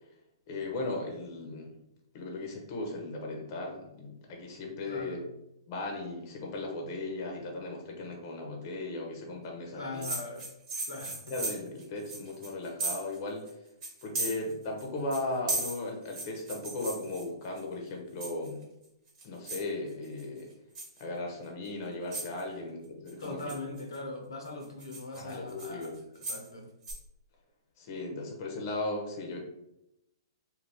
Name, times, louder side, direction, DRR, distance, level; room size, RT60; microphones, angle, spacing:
voice 1, 0.5-1.8 2.1-5.2 5.7-10.1 11.3-13.4 14.0-18.6 19.2-20.5 21.0-23.4 25.2-26.0 27.8-29.4, left 2 dB, 40° left, 1 dB, 0.8 m, -37 dB
voice 2, 4.9-5.2 9.7-10.5 10.9-11.4 23.2-25.9 26.2-26.7, left 2 dB, 80° left, 2 dB, 0.7 m, -40 dB
sound 1, 10.0-13.2 13.5-13.6 13.8-14.8 15.1-17.6 18.2-18.6 19.1-19.7 20.0-20.4 20.7-21.0 21.6-21.7 22.1-22.4 23.1-24.0 24.4-26.5 26.8-26.9, right 2 dB, 30° right, 1.1 m, -36 dB
2.6 x 2.3 x 3.4 m, 0.83 s
hypercardioid pair, 125°, 2 cm